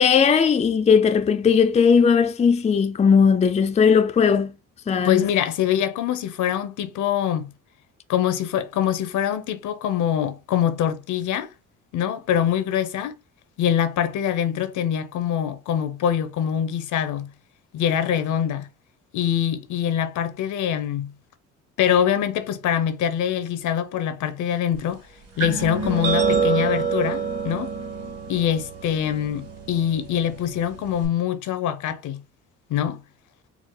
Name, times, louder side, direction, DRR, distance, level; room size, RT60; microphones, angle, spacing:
voice 1, 0.0-4.5 4.9-5.3, left 6 dB, 20° left, 0.4 m, -18 dB
voice 2, 5.0-7.5 8.1-11.5 11.9-13.1 13.6-17.3 17.7-18.7 19.1-21.1 21.8-25.0 25.4-27.7 28.3-32.2 32.7-33.0, left 9 dB, 75° left, 0.7 m, -24 dB
sound 1, 25.4-31.1, right 5 dB, 50° right, 1.9 m, -27 dB
4.6 x 2.0 x 3.7 m
cardioid pair, 90°, 30 cm